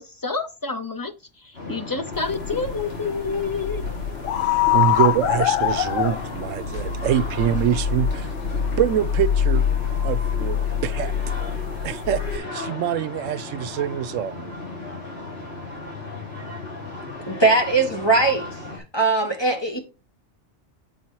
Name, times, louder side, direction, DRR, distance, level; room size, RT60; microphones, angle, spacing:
voice 1, 0.0-3.8, left 4 dB, 35° left, 0.3 m, -29 dB
sound 1, 1.5-18.8, left 2 dB, 55° left, 3.1 m, -35 dB
sound 2, 2.1-12.4, left 9 dB, 85° left, 1.0 m, -24 dB
voice 2, 4.7-8.3 8.8-9.6 10.0-11.1 11.8-14.5, right 10 dB, 80° right, 1.0 m, -25 dB
voice 3, 17.3-18.5 18.9-19.8, right 3 dB, 20° left, 1.4 m, -20 dB
7.9 x 4.3 x 4.5 m
omnidirectional pair, 1.3 m